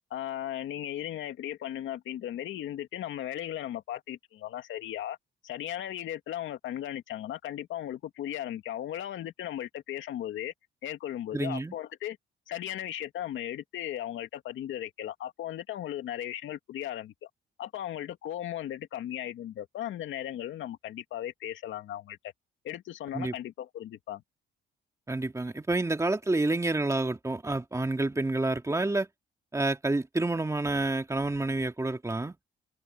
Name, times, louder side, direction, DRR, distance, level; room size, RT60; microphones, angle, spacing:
voice 1, 0.1-5.2 5.4-10.5 10.8-12.2 12.5-17.3 17.6-22.3 22.6-24.2, left 11 dB, 80° left, 2.3 m, -36 dB
voice 2, 11.3-11.7 23.1-23.3 25.1-29.1 29.5-32.4, right 2 dB, 15° right, 2.4 m, -29 dB
cardioid pair, 90°, 20 cm